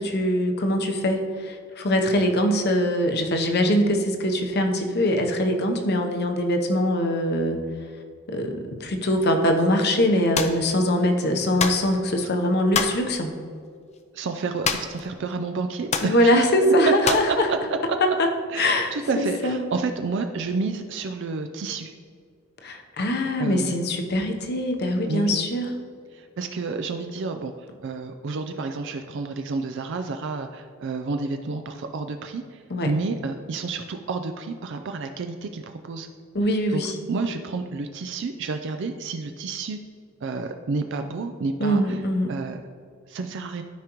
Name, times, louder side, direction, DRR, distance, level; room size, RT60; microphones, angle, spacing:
voice 1, 0.0-7.6 8.3-13.3 16.0-17.5 18.2-18.3 18.6-19.6 22.6-25.7 32.7-32.9 36.3-36.9 41.6-42.3, equal, 50° left, 5 dB, 0.8 m, -22 dB
sound 1, 10.3-10.6 11.6-11.9 12.7-13.0 14.6-15.0 15.3-15.4 15.9-16.2 17.0-17.3, left 6 dB, 35° left, 0.5 m, -25 dB
voice 2, 14.1-16.4 16.9-17.6 18.5-21.9 23.4-23.8 25.1-25.4 26.1-36.1 36.7-39.8 40.2-42.0 42.3-42.6 43.1-43.6, right 4 dB, 60° right, 6 dB, 0.4 m, -30 dB
12.5 x 5.0 x 3.0 m, 2.1 s
head